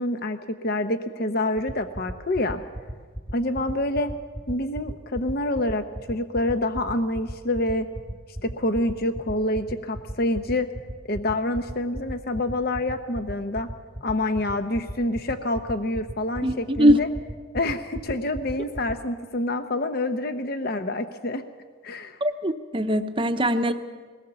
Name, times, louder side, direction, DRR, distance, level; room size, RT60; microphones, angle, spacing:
voice 1, 0.0-2.6 3.3-4.1 4.5-7.9 8.4-10.7 11.1-13.7 14.0-17.1 17.5-21.4 21.8-22.2, left 1 dB, 50° left, 9 dB, 0.8 m, -27 dB
sound 1, 1.6-18.9, equal, 15° left, 1.3 m, -33 dB
voice 2, 16.4-17.0 22.2-23.7, equal, 25° right, 8 dB, 0.8 m, -21 dB
21.5 x 17.5 x 7.0 m, 1.5 s
head